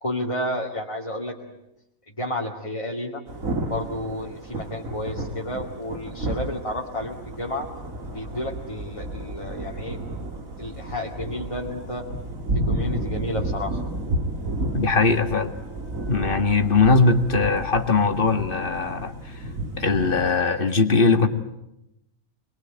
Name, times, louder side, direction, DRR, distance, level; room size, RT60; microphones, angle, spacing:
voice 1, 0.0-1.4 2.2-3.2 3.7-7.7 8.1-10.0 10.6-12.1 12.5-13.8, left 1 dB, 25° left, -1 dB, 2.3 m, -31 dB
Thunder / Rain, 3.3-20.3, right 1 dB, 80° right, 3.1 m, -32 dB
voice 2, 14.7-15.5 16.1-19.3 19.8-21.3, left 4 dB, 40° left, 6 dB, 2.0 m, -20 dB
27.0 x 21.5 x 8.9 m, 0.86 s
omnidirectional pair, 1.4 m